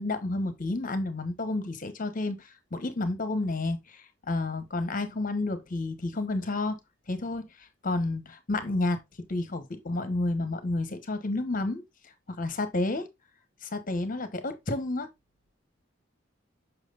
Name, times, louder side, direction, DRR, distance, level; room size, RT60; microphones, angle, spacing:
voice 1, 0.0-6.8 7.1-9.0 9.3-13.1 13.6-15.1, left 2 dB, 45° left, 1.1 m, -31 dB
7.4 x 5.9 x 2.5 m
head